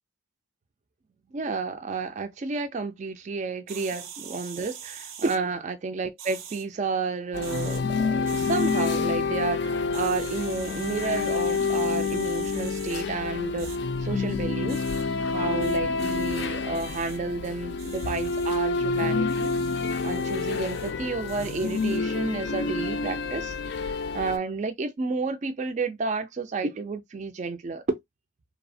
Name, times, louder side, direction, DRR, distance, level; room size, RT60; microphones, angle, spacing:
voice 1, 1.3-13.7 14.0-14.8 15.3-19.5 20.0-23.6 23.8-28.0, right 4 dB, 35° right, 0.3 m, -31 dB
sound 1, 3.7-5.4 6.2-6.7 7.3-7.8 8.3-9.0 9.9-13.0 13.6-13.8 14.7-15.0 15.6-16.5 16.7-17.2 17.8-18.6 19.3-20.9 21.3-22.0, right 8 dB, 85° right, 0.5 m, -44 dB
sound 2, 7.3-24.4, left 4 dB, 55° left, 0.4 m, -28 dB
2.8 x 2.0 x 2.5 m
head